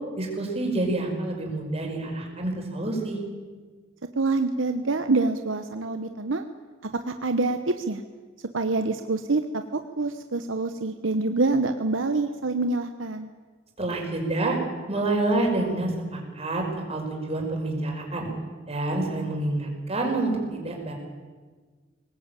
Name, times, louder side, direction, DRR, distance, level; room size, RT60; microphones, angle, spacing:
voice 1, 0.2-3.2 13.8-14.6 14.9-16.6 16.9-18.3 18.7-20.9, right 2 dB, 30° right, 0 dB, 5.3 m, -27 dB
voice 2, 4.2-6.5 7.1-8.0 8.5-13.3, right 3 dB, 70° right, 8 dB, 1.0 m, -26 dB
22.5 x 19.0 x 9.0 m, 1.5 s
head